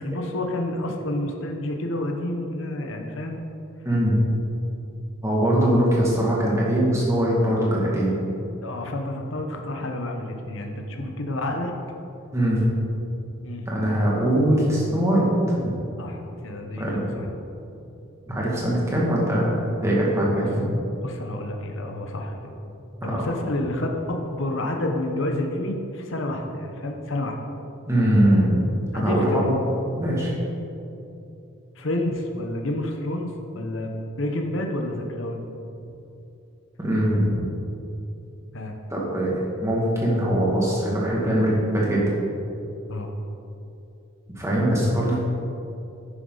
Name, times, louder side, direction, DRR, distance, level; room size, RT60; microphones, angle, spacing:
voice 1, 0.0-3.4 8.6-11.8 13.4-13.7 16.0-17.3 20.4-20.5 21.0-22.5 23.0-27.4 28.9-29.6 31.8-33.3 33.5-35.5 38.5-38.7 42.9-43.1, left 1 dB, 65° left, 3 dB, 1.0 m, -29 dB
voice 2, 3.8-4.2 5.2-8.2 12.3-12.6 13.7-15.6 16.8-17.0 18.3-20.5 23.0-23.2 27.9-28.5 28.9-29.5 30.0-30.3 36.8-37.4 38.9-42.1 44.4-45.2, right 1 dB, 15° right, -5 dB, 2.2 m, -22 dB
10.0 x 9.9 x 4.0 m, 2.8 s
head